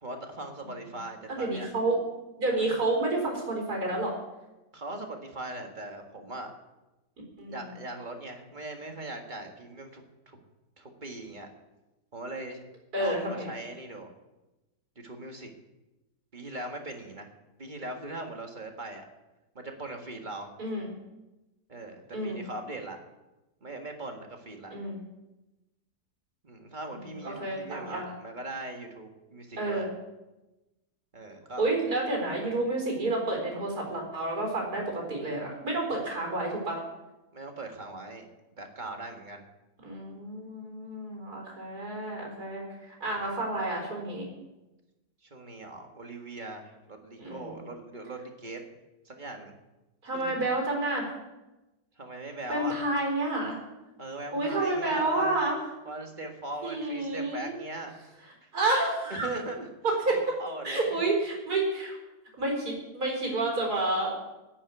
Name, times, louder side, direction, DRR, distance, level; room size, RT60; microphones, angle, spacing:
voice 1, 0.0-1.7 2.5-2.7 4.7-6.5 7.5-10.4 10.8-11.5 12.1-12.6 13.0-14.1 15.0-15.5 16.3-17.3 17.6-19.0 19.6-20.5 21.7-23.0 23.6-24.8 26.4-29.9 31.1-31.7 37.3-38.2 38.6-39.4 43.0-43.4 45.2-48.6 49.1-49.5 50.1-50.4 52.0-52.8 54.0-55.4 55.9-58.1 58.4-58.5 59.1-59.7 60.1-61.0, right 2 dB, 30° right, 3 dB, 1.7 m, -40 dB
voice 2, 1.3-2.0 2.4-4.2 7.4-7.7 12.9-13.5 20.6-20.9 22.1-22.4 24.7-25.0 26.9-28.1 29.6-29.9 31.6-36.8 39.8-44.2 47.2-47.6 50.0-51.1 52.5-53.6 54.3-55.6 56.6-57.6 58.5-59.3 60.0-60.2 60.6-62.0 62.4-64.1, right 2 dB, 60° right, 0 dB, 4.7 m, -30 dB
10.0 x 9.7 x 8.3 m, 1.0 s
omnidirectional pair, 1.8 m